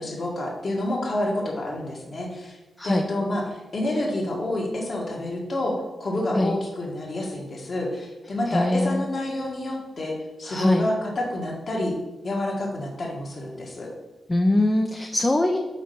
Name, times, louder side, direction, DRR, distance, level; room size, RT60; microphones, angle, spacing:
voice 1, 0.0-12.0 12.2-13.9, left 1 dB, 55° left, -1 dB, 1.7 m, -28 dB
voice 2, 2.8-3.1 6.3-6.6 8.5-9.1 10.4-10.9 14.3-15.6, left 1 dB, 25° left, 3 dB, 0.6 m, -22 dB
5.1 x 4.1 x 5.5 m, 1.1 s
cardioid pair, 65°, 0 cm